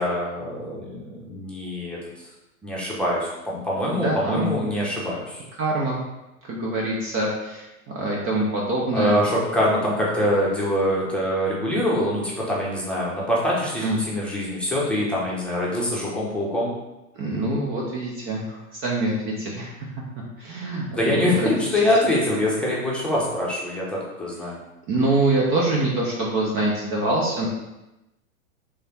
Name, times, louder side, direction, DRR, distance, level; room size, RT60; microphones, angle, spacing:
voice 1, 0.0-2.0 2.6-5.4 8.9-16.7 20.9-24.6, left 1 dB, ahead, -6 dB, 1.0 m, -24 dB
voice 2, 3.9-4.5 5.6-6.0 6.4-9.2 13.8-14.0 17.2-19.9 20.4-21.6 24.9-27.5, right 2 dB, 30° right, -3 dB, 0.7 m, -25 dB
3.5 x 3.3 x 4.2 m, 0.97 s
hypercardioid pair, 120°, 43 cm